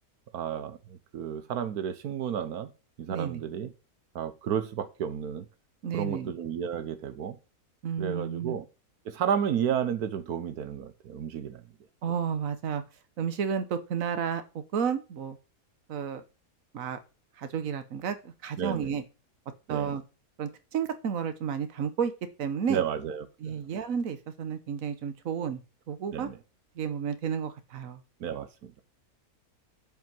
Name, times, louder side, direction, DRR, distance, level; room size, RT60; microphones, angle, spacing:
voice 1, 0.3-2.7 3.0-3.7 4.1-5.5 5.9-7.4 8.0-8.6 9.0-11.6 18.6-18.9 19.7-19.9 22.7-23.5 26.1-26.4 28.2-28.7, right 8 dB, 85° right, 1.4 m, -32 dB
voice 2, 3.1-3.4 5.8-6.3 7.8-8.5 12.0-12.8 13.2-14.4 14.7-15.4 15.9-16.2 16.7-17.0 17.4-19.0 19.7-20.0 20.4-22.1 22.4-22.8 23.4-25.6 25.9-26.3 26.8-28.0, right 7 dB, 65° right, 1.5 m, -31 dB
7.6 x 5.6 x 7.6 m
omnidirectional pair, 1.6 m